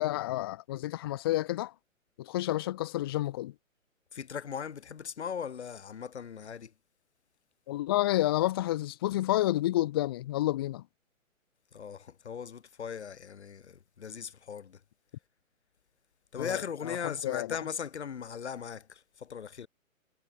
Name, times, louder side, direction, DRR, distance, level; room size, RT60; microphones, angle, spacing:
voice 1, 0.0-1.7 2.2-3.5 7.7-10.8 16.4-16.6 16.8-17.5, left 15 dB, 15° left, 0.8 m, -30 dB
voice 2, 4.1-6.7 11.7-14.8 16.3-19.7, left 7 dB, 50° left, 2.9 m, -38 dB
figure-of-eight pair, 135°, 41 cm